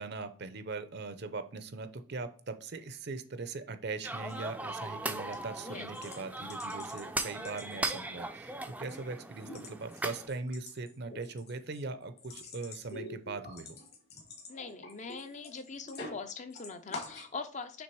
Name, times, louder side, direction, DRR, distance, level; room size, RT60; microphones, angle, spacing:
voice 1, 0.0-13.8, right 3 dB, 55° right, 10 dB, 0.7 m, -40 dB
sound 1, 4.0-10.3, right 2 dB, 10° right, 0.4 m, -38 dB
sound 2, 4.3-4.4 4.8-5.0 5.3-5.4 5.9-7.0 7.4-8.1 8.5-9.0 9.3-16.2 16.5-17.3, left 2 dB, 55° left, 1.6 m, -47 dB
voice 2, 14.5-17.8, left 4 dB, 40° left, 8 dB, 0.6 m, -42 dB
6.1 x 3.4 x 4.6 m, 0.43 s
head